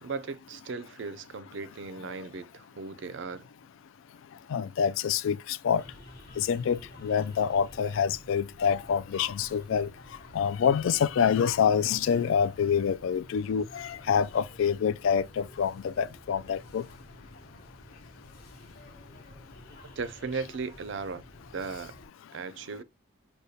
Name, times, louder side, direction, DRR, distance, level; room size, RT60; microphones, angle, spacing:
voice 1, 0.0-3.5 20.0-21.2 21.5-21.9 22.3-22.8, right 4 dB, 60° right, 0.4 m, -37 dB
voice 2, 4.5-5.8 6.4-9.9 10.3-16.8, left 7 dB, 75° left, 0.3 m, -26 dB
sound 1, 5.8-22.1, left 1 dB, 45° left, 1.1 m, -51 dB
6.4 x 2.2 x 2.7 m
head